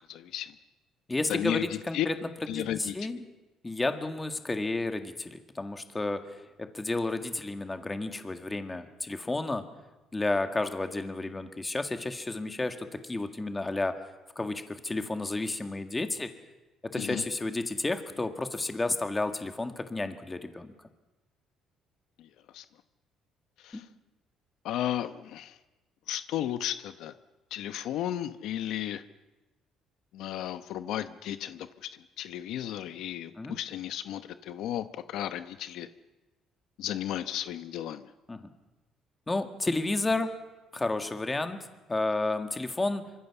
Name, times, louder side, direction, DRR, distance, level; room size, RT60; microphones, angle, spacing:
voice 1, 0.1-0.5 1.3-2.1 2.5-3.1 17.0-17.2 22.2-22.3 22.5-22.6 23.6-23.9 24.6-25.6 26.1-27.1 27.5-29.0 30.1-31.9 32.2-35.9 36.8-38.0, left 11 dB, 70° left, 11 dB, 1.0 m, -34 dB
voice 2, 1.1-2.1 2.5-3.3 3.6-6.2 6.6-9.6 10.1-13.9 14.4-16.3 16.9-20.7 23.7-23.8 33.4-33.6 38.3-38.5 39.3-40.3 40.7-41.6 41.9-43.1, left 2 dB, 15° left, 7 dB, 1.8 m, -31 dB
26.0 x 25.0 x 7.1 m, 1.1 s
cardioid pair, 155°, 0 cm